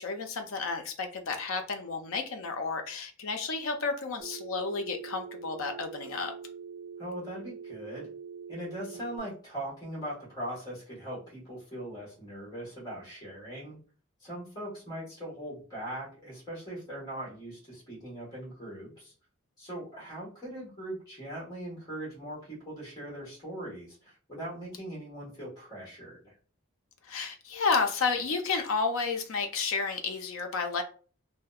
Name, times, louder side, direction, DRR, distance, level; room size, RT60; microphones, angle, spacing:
voice 1, 0.0-6.3 27.0-30.8, left 4 dB, 70° left, 6 dB, 0.4 m, -31 dB
Telephone, 4.2-9.2, right 6 dB, 40° right, 0.4 m, -44 dB
voice 2, 7.0-8.1 8.5-13.8 14.2-19.1 19.6-26.3, right 1 dB, 20° left, -6 dB, 1.3 m, -40 dB
2.6 x 2.0 x 2.3 m, 0.40 s
head